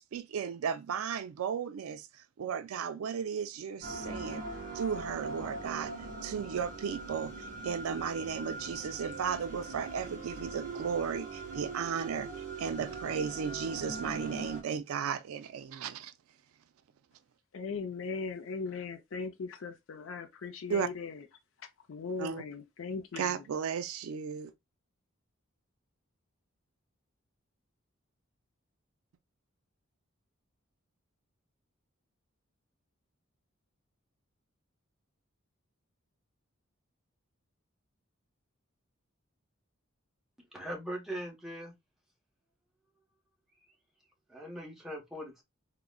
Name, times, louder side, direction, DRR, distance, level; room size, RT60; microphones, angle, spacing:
voice 1, 0.0-4.4 4.7-5.9 6.2-16.1 20.7-20.9 22.2-22.4 23.2-24.5, right 7 dB, 85° right, 0.3 m, -35 dB
sound 1, 3.8-14.6, right 3 dB, 40° right, 0.9 m, -41 dB
voice 2, 17.5-21.2 21.9-23.4, left 4 dB, 70° left, 0.5 m, -39 dB
voice 3, 40.5-41.7 44.3-45.4, equal, ahead, 0.9 m, -40 dB
3.7 x 2.0 x 2.2 m
head